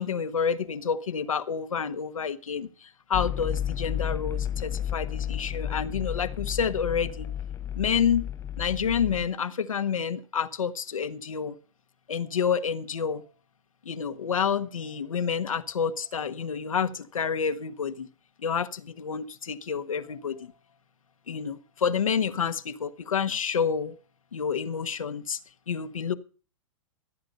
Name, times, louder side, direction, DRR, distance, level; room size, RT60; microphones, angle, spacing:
voice 1, 0.0-7.3 7.7-8.3 8.6-11.6 12.1-13.2 13.8-18.1 18.4-20.5 21.3-23.9 24.3-25.4 25.7-26.1, left 7 dB, 90° left, 1.4 m, -29 dB
sound 1, 3.1-9.3, left 10 dB, 15° left, 0.5 m, -32 dB
15.5 x 9.2 x 5.4 m
hypercardioid pair, 120°, 17 cm